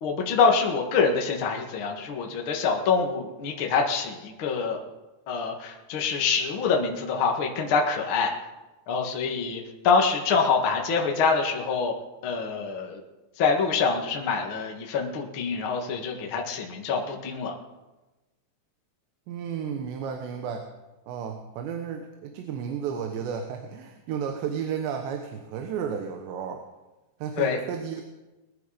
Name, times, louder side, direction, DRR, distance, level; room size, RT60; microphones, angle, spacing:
voice 1, 0.0-4.8 5.3-8.3 8.9-11.9 12.2-13.0 13.4-17.5 27.4-27.6, left 5 dB, 50° left, 1 dB, 1.7 m, -25 dB
voice 2, 19.3-20.7 21.1-26.7 27.2-28.0, right 7 dB, 90° right, 5 dB, 3.3 m, -33 dB
21.5 x 10.5 x 5.1 m, 1.1 s
omnidirectional pair, 4.9 m